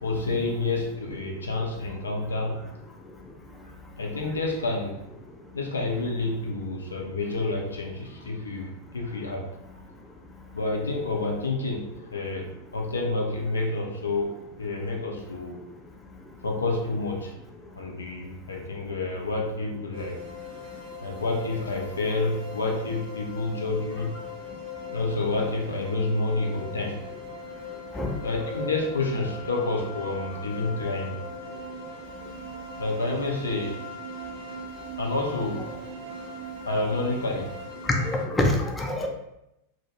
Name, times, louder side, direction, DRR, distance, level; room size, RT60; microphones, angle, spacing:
voice 1, 0.0-2.7 4.0-5.1 5.5-9.5 10.5-15.6 16.4-17.3 17.8-20.2 21.0-24.1 24.9-27.0 28.2-31.2 32.8-33.8 35.0-35.7 36.7-37.6, left 2 dB, 75° left, 1 dB, 0.4 m, -29 dB
sound 1, 19.9-38.2, left 1 dB, 65° right, 0.7 m, -40 dB
voice 2, 38.1-39.1, left 1 dB, 10° left, 1 dB, 0.4 m, -26 dB
2.1 x 2.1 x 3.0 m, 0.86 s
figure-of-eight pair, 90°, 0 cm